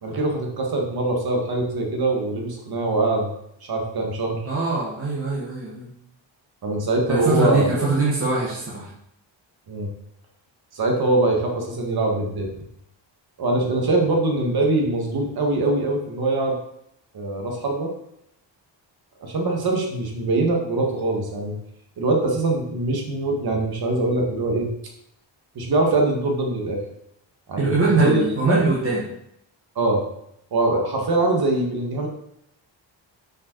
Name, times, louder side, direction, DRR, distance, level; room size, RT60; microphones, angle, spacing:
voice 1, 0.0-3.3 3.6-4.4 6.6-7.7 9.7-9.9 10.7-12.5 13.4-16.6 17.1-17.9 19.2-21.5 22.0-24.7 25.6-26.8 27.5-28.2 28.5-28.6 29.8-30.0 30.5-32.1, right 2 dB, 50° right, 1 dB, 1.7 m, -23 dB
voice 2, 4.4-5.9 7.1-8.9 27.6-29.0, right 3 dB, 30° right, -6 dB, 1.3 m, -22 dB
6.5 x 5.4 x 4.5 m, 0.76 s
wide cardioid pair, 180°, 46 cm